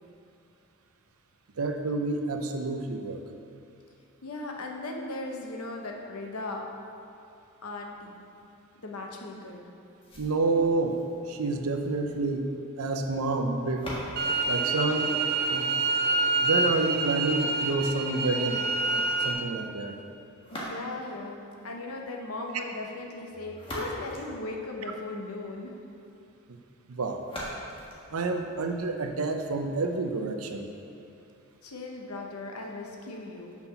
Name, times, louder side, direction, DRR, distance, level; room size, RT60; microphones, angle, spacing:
voice 1, 1.6-3.2 10.2-11.0 11.3-12.5 12.8-13.9 14.5-15.1 15.5-15.7 16.4-18.6 18.9-19.9 26.5-26.6 26.9-27.3 28.1-30.7, right 3 dB, 75° right, 5 dB, 0.7 m, -29 dB
voice 2, 4.2-6.7 7.6-8.2 8.8-9.6 20.5-25.7 31.6-33.6, left 2 dB, 85° left, 1 dB, 1.0 m, -37 dB
sound 1, 10.0-16.0 20.4-21.2 23.3-25.2 27.2-29.2, equal, 25° left, 1.4 m, -43 dB
sound 2, 14.2-19.3, right 3 dB, 50° right, 0.8 m, -27 dB
6.0 x 5.8 x 5.8 m, 2.6 s
head